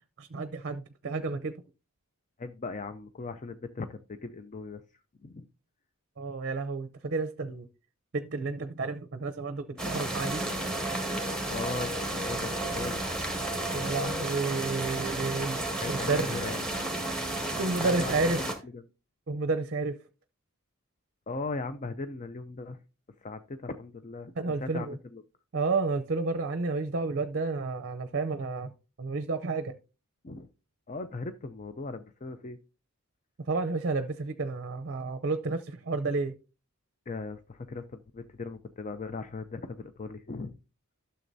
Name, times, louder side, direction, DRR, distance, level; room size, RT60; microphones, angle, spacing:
voice 1, 0.2-1.6 6.2-7.7 8.1-10.4 13.7-15.6 15.9-16.4 17.6-18.4 19.3-20.0 24.3-25.0 25.5-28.7 29.0-29.8 33.5-36.4, right 3 dB, 50° right, 0.6 m, -31 dB
voice 2, 2.4-4.8 5.2-5.5 9.7-10.0 11.5-13.0 15.8-16.8 17.5-18.3 18.7-18.8 21.3-22.8 23.2-25.2 30.2-30.5 30.9-32.6 37.1-40.6, left 3 dB, 35° left, 0.5 m, -38 dB
sound 1, 9.8-18.5, right 1 dB, 5° left, 1.8 m, -32 dB
12.5 x 6.9 x 2.7 m
head